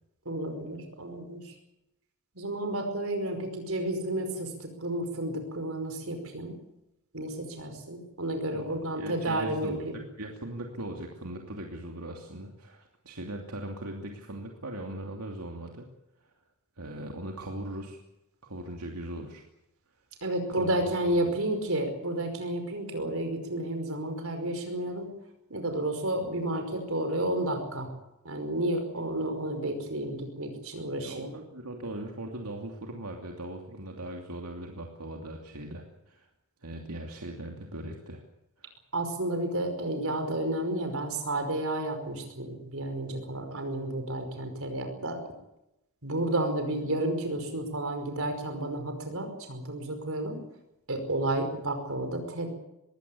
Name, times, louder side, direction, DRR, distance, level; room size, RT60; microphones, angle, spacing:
voice 1, 0.3-1.5 2.4-6.6 7.1-10.0 20.2-25.1 25.5-27.9 28.3-31.3 38.9-45.2 46.0-50.4 50.9-52.5, right 1 dB, 65° right, 6 dB, 5.2 m, -31 dB
voice 2, 8.5-15.9 16.2-16.3 16.8-18.0 18.4-19.4 20.5-20.7 21.3-21.4 31.0-36.3 36.6-38.2 38.6-38.7, right 1 dB, 85° right, 1 dB, 2.8 m, -39 dB
21.5 x 17.0 x 8.6 m, 0.90 s
head